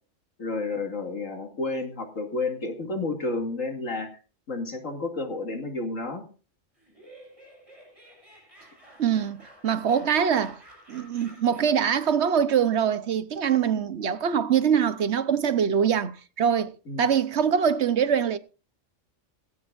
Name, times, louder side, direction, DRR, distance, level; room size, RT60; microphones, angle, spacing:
voice 1, 0.4-4.1 4.5-6.2 16.9-17.0, left 3 dB, 80° left, 2.9 m, -31 dB
Laughter, 6.8-12.2, right 1 dB, 25° right, 6.9 m, -52 dB
voice 2, 9.0-10.6 10.9-16.7 17.0-18.4, right 8 dB, 60° right, 1.1 m, -23 dB
17.0 x 16.5 x 2.6 m
omnidirectional pair, 1.3 m